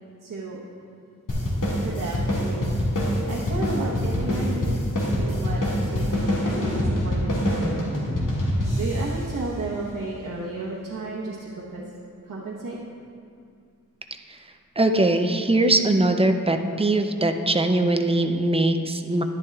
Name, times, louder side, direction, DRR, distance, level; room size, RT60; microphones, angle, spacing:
voice 1, 0.2-0.6 1.8-2.7 3.0-4.8 5.1-7.7 8.7-11.9 12.2-12.8, right 2 dB, 70° right, -5 dB, 1.0 m, -33 dB
sound 1, 1.3-10.1, equal, 75° left, 1.9 m, -25 dB
voice 2, 14.8-19.2, right 2 dB, 20° right, 6 dB, 0.4 m, -21 dB
11.0 x 10.5 x 2.3 m, 2.4 s
wide cardioid pair, 130°, 32 cm